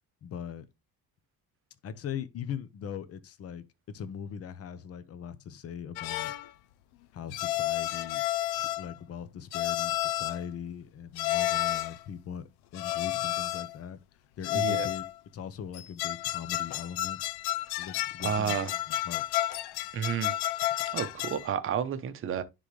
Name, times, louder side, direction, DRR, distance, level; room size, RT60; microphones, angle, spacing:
voice 1, 0.2-0.7 1.8-6.3 7.1-8.2 8.5-12.4 12.7-14.0 14.4-15.0 15.3-17.2 17.8-19.3, left 8 dB, 40° left, 0.8 m, -40 dB
sound 1, 6.0-6.5 7.3-9.0 9.5-10.4 11.2-12.0 12.7-13.8 14.4-15.1 15.7-21.5, left 15 dB, 80° left, 0.6 m, -31 dB
voice 2, 14.5-14.9 18.2-18.7 19.9-20.4 20.9-22.4, right 8 dB, 35° right, 0.8 m, -31 dB
10.0 x 3.9 x 3.1 m
cardioid pair, 165°, 38 cm